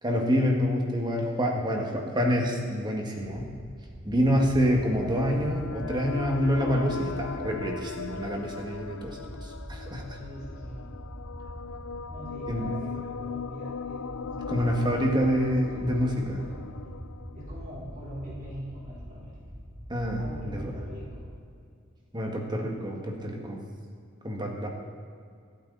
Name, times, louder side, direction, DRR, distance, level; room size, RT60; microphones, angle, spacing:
voice 1, 0.0-3.5 4.0-10.0 12.5-12.7 14.5-16.4 19.9-20.7 22.1-23.6 24.2-24.7, equal, 20° right, 1 dB, 2.0 m, -27 dB
sound 1, 3.4-21.3, equal, ahead, 2.2 m, -43 dB
sound 2, 4.8-18.4, left 5 dB, 90° left, 0.6 m, -39 dB
voice 2, 10.2-10.9 12.1-16.7 17.3-19.3 20.2-21.2, equal, 40° right, -6 dB, 4.0 m, -43 dB
27.5 x 9.2 x 4.2 m, 2.3 s
head